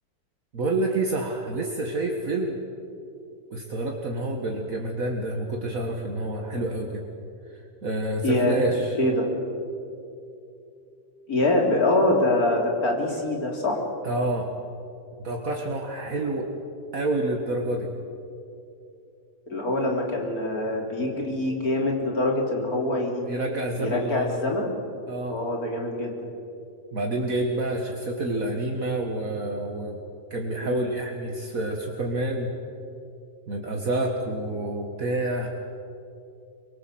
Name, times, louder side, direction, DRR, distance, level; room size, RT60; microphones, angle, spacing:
voice 1, 0.5-2.6 3.5-7.0 7.5-9.0 14.0-14.5 15.2-16.5 16.9-17.9 23.2-24.4 25.1-25.4 26.9-30.0 30.3-32.5 33.5-35.5, right 2 dB, 60° right, 1 dB, 2.1 m, -28 dB
voice 2, 8.2-8.6 9.0-9.3 11.3-13.8 19.5-23.2 23.8-24.7 25.3-26.2 30.6-30.8, left 2 dB, 65° left, 0 dB, 4.1 m, -24 dB
24.5 x 23.0 x 7.8 m, 2.7 s
omnidirectional pair, 1.7 m